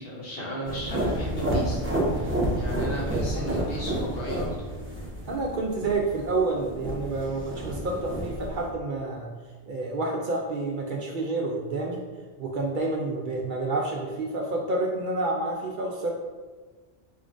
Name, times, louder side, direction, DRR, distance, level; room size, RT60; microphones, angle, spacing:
voice 1, 0.0-1.8 2.1-4.5, equal, 60° left, -3 dB, 1.1 m, -34 dB
sound 1, 0.6-8.7, right 1 dB, 15° right, 0.7 m, -30 dB
voice 2, 5.3-9.3 9.7-12.0 12.4-16.1, right 2 dB, 60° right, -1 dB, 0.6 m, -29 dB
4.2 x 3.7 x 2.5 m, 1.4 s
omnidirectional pair, 1.1 m